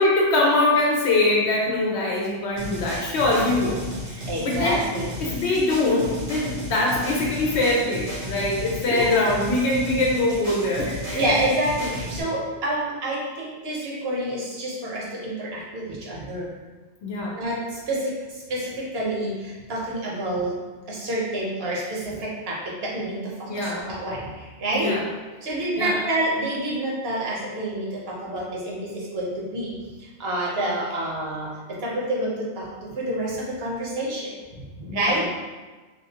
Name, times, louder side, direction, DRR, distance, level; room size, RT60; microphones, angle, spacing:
voice 1, 0.0-4.8 5.2-11.2 17.0-17.3 23.5-23.9 24.7-25.0 25.8-26.0 34.9-35.2, left 2 dB, 75° left, -3 dB, 0.9 m, -23 dB
sound 1, 2.6-12.2, equal, 85° right, 1.3 m, -34 dB
voice 2, 4.3-5.1 8.8-9.2 11.1-16.5 17.3-20.6 20.9-25.0 25.4-29.7 30.0-35.2, right 1 dB, 65° right, -4 dB, 1.0 m, -28 dB
3.5 x 2.5 x 2.8 m, 1.3 s
omnidirectional pair, 1.1 m